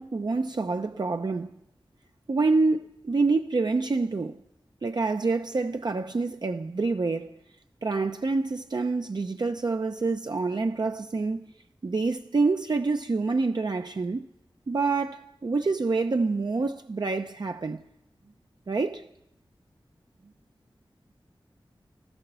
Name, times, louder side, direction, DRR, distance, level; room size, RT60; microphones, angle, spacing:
voice 1, 0.0-1.5 2.3-4.4 4.8-7.3 7.8-11.4 11.8-14.2 14.7-17.8 18.7-19.1, right 3 dB, 55° right, 0.6 m, -27 dB
14.5 x 14.5 x 6.8 m
wide cardioid pair, 60°, 9 cm